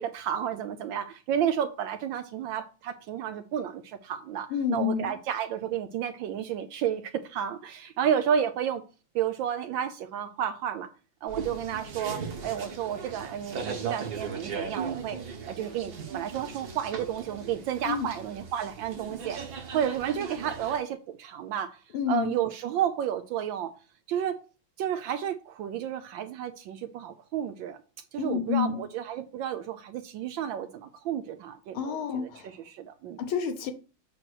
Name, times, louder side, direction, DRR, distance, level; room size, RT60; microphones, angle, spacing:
voice 1, 0.0-8.8 9.1-10.9 11.2-15.2 15.5-23.7 24.1-24.4 24.8-27.8 28.1-33.2, right 9 dB, 75° right, 1.2 m, -31 dB
voice 2, 4.5-5.1 17.9-18.1 21.9-22.3 28.2-28.8 31.7-32.5 33.2-33.7, left 7 dB, 75° left, 1.7 m, -29 dB
sound 1, 11.3-20.8, right 6 dB, 50° right, 1.5 m, -38 dB
7.7 x 3.0 x 6.2 m
omnidirectional pair, 2.4 m